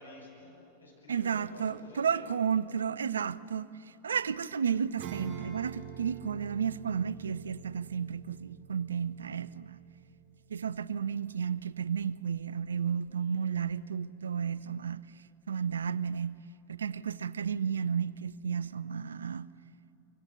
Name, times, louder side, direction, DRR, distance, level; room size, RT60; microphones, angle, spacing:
voice 1, 0.0-2.3 13.2-13.5, left 2 dB, 85° left, 6.5 m, -51 dB
voice 2, 1.1-9.8 10.5-15.0 15.5-16.4 16.7-19.5, right 7 dB, 70° right, 0.5 m, -32 dB
Acoustic guitar / Strum, 5.0-11.0, right 7 dB, 35° right, 4.5 m, -46 dB
25.0 x 24.0 x 6.8 m
figure-of-eight pair, 90°, 0 cm